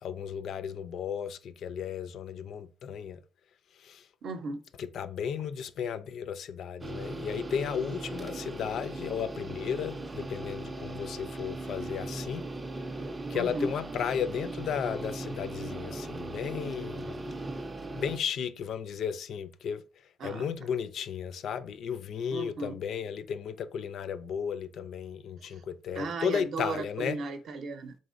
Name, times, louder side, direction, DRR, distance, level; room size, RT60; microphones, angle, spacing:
voice 1, 0.0-3.2 3.7-4.1 4.8-12.5 13.3-19.8 20.2-27.2, left 7 dB, 65° left, 0.3 m, -34 dB
voice 2, 4.2-4.6 13.3-13.7 20.2-20.5 22.3-22.8 25.5-25.6 26.0-28.0, right 3 dB, 55° right, 0.6 m, -35 dB
sound 1, 6.8-18.2, right 2 dB, 20° right, 0.4 m, -38 dB
4.0 x 3.6 x 2.5 m
cardioid pair, 180°, 0 cm